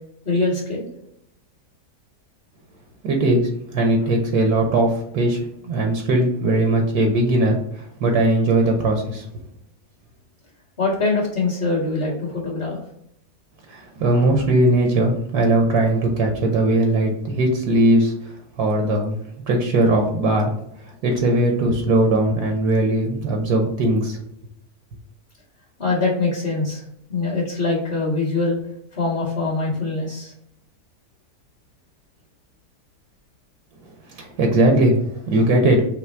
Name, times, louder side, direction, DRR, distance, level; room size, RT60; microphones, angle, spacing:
voice 1, 0.2-0.9 10.8-12.8 25.8-26.8 27.1-28.6 28.9-30.3, left 3 dB, 35° left, -3 dB, 1.5 m, -23 dB
voice 2, 3.0-9.3 13.7-18.3 18.6-19.2 19.5-20.5 21.0-24.2 34.1-35.8, right 1 dB, 70° right, 3 dB, 1.2 m, -19 dB
5.7 x 2.0 x 4.3 m, 0.75 s
omnidirectional pair, 1.8 m